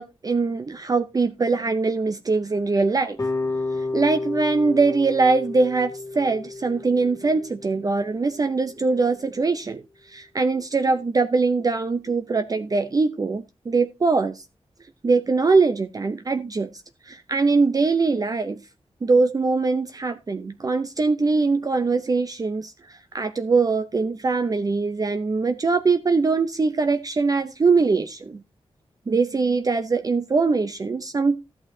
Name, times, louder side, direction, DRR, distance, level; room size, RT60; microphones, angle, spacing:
voice 1, 0.0-3.2 3.9-9.8 10.1-14.4 15.0-16.7 17.1-18.6 19.0-28.4 29.1-31.4, right 4 dB, 35° right, 0.5 m, -22 dB
sound 1, 3.2-8.3, left 3 dB, 30° left, 1.8 m, -31 dB
13.5 x 8.5 x 2.7 m
wide cardioid pair, 120°, 11 cm